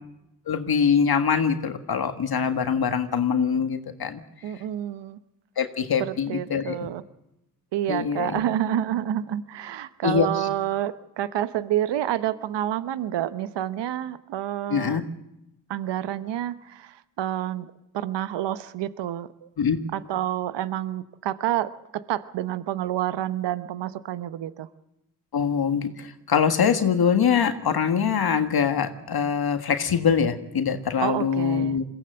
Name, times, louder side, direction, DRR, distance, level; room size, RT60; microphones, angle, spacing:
voice 1, 0.5-4.2 5.6-6.8 7.9-8.4 10.0-10.5 14.7-15.0 19.6-19.8 25.3-31.8, left 7 dB, 55° left, 7 dB, 1.7 m, -23 dB
voice 2, 4.4-5.2 6.0-7.0 7.7-15.0 15.7-19.5 19.9-24.7 31.0-31.8, right 12 dB, 75° right, 14 dB, 1.0 m, -29 dB
22.0 x 17.0 x 7.7 m, 0.91 s
supercardioid pair, 50°, 43 cm